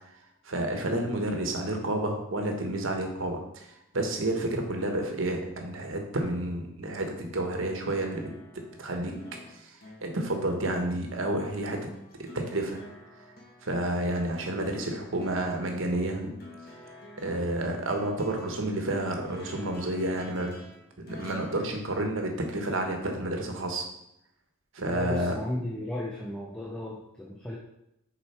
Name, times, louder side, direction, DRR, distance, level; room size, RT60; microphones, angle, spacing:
voice 1, 0.4-3.7 3.9-9.1 9.5-11.9 12.2-12.8 13.6-16.3 17.2-20.5 21.0-23.8 24.7-25.4, right 1 dB, 75° right, 3 dB, 1.2 m, -30 dB
sound 1, 7.9-22.8 24.0-24.1, left 1 dB, 45° left, 1.4 m, -50 dB
voice 2, 24.9-27.6, left 1 dB, 5° left, -4 dB, 0.7 m, -35 dB
6.7 x 4.7 x 4.3 m, 0.82 s
head